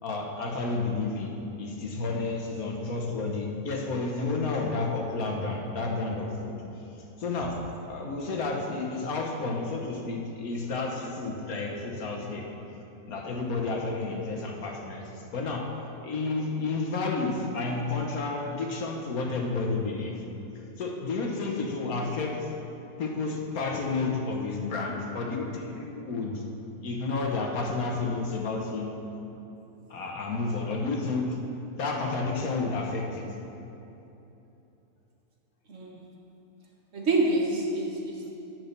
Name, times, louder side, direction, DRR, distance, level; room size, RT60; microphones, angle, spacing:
voice 1, 0.0-1.3 1.6-6.5 7.2-7.6 7.9-12.5 13.1-15.7 16.0-20.1 20.8-22.5 23.0-26.4 26.8-28.9 29.9-31.4 31.8-33.3, left 3 dB, 70° left, 0 dB, 1.5 m, -31 dB
voice 2, 36.9-38.3, right 2 dB, 55° right, -1 dB, 1.5 m, -27 dB
9.5 x 6.0 x 6.6 m, 2.9 s
omnidirectional pair, 1.6 m